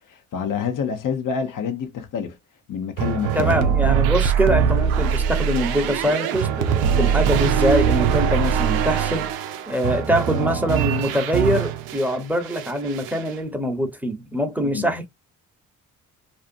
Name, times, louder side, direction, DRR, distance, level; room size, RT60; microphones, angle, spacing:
voice 1, 0.1-2.4 2.7-3.6 14.6-14.9, left 7 dB, 60° left, 0.8 m, -27 dB
sound 1, 3.0-12.1 12.5-13.3, right 8 dB, 85° right, 0.5 m, -22 dB
voice 2, 3.3-9.3 9.7-15.1, equal, 5° right, 0.9 m, -23 dB
2.6 x 2.4 x 2.6 m
supercardioid pair, 45°, 36 cm